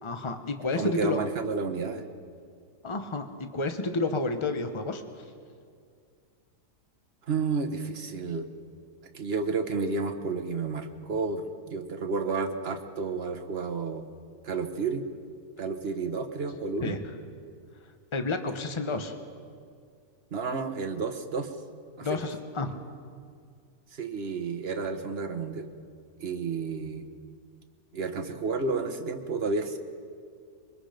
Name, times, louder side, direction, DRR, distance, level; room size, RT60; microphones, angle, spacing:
voice 1, 0.0-1.2 2.8-5.2 16.8-17.0 18.1-19.2 22.0-22.7, left 3 dB, 20° left, 7 dB, 1.1 m, -30 dB
voice 2, 0.7-2.1 7.3-8.5 9.1-14.0 14.4-15.1 15.6-16.9 20.3-21.5 22.0-22.2 23.9-25.7 26.2-27.1 27.9-29.8, right 4 dB, 40° right, 6 dB, 1.3 m, -31 dB
26.0 x 23.0 x 5.2 m, 2.2 s
omnidirectional pair, 1.8 m